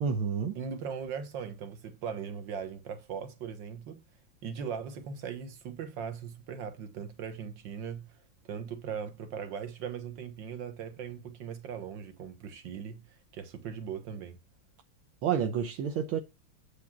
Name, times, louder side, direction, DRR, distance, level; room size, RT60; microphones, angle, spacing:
voice 1, 0.0-0.6 15.2-16.2, right 7 dB, 80° right, 1.7 m, -29 dB
voice 2, 0.6-4.0 4.4-8.1 8.5-13.0 13.3-14.4, right 7 dB, 65° right, 2.0 m, -39 dB
8.5 x 5.2 x 5.9 m
omnidirectional pair, 2.2 m